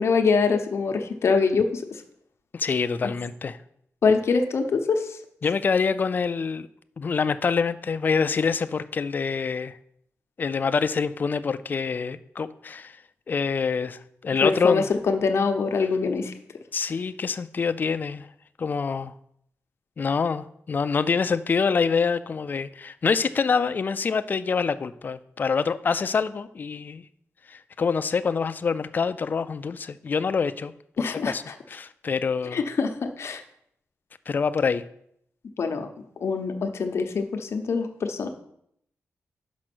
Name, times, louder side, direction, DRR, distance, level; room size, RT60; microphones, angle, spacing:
voice 1, 0.0-1.8 4.0-5.1 14.4-16.3 31.0-31.3 32.5-33.4 35.6-35.9 36.2-38.3, left 5 dB, 60° left, 5 dB, 0.9 m, -24 dB
voice 2, 2.5-3.6 5.4-6.7 7.0-9.8 10.4-12.9 13.3-14.9 16.7-18.3 18.6-19.1 20.0-27.0 27.5-30.7 31.0-31.4 31.7-32.6 34.3-34.8, left 5 dB, 35° left, 11 dB, 0.3 m, -26 dB
6.2 x 5.4 x 6.0 m, 0.72 s
wide cardioid pair, 140°, 5 cm